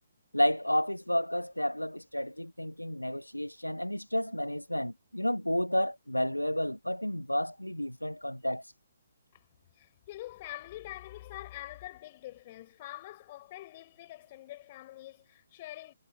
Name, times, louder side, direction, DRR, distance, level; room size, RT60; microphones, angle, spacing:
voice 1, 0.3-8.6, left 1 dB, 90° left, 0.5 m, -31 dB
voice 2, 9.7-15.9, left 15 dB, 30° left, 5.1 m, -45 dB
figure-of-eight pair, 135°, 0 cm